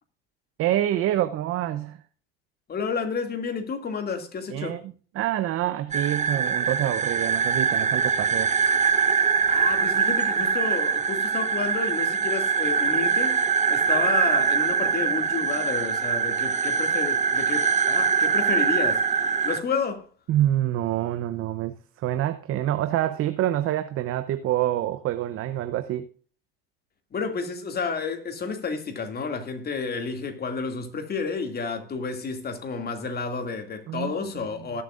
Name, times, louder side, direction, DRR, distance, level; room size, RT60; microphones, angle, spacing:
voice 1, 0.6-2.0 4.5-4.8 5.1-8.5 20.3-26.1 33.9-34.1, right 13 dB, 45° right, 0.8 m, -26 dB
voice 2, 2.7-4.8 9.5-20.1 27.1-34.8, left 5 dB, 30° left, 2.5 m, -31 dB
sound 1, 5.9-19.6, right 6 dB, 25° right, 1.2 m, -23 dB
19.0 x 7.6 x 2.5 m
hypercardioid pair, 90°, 31 cm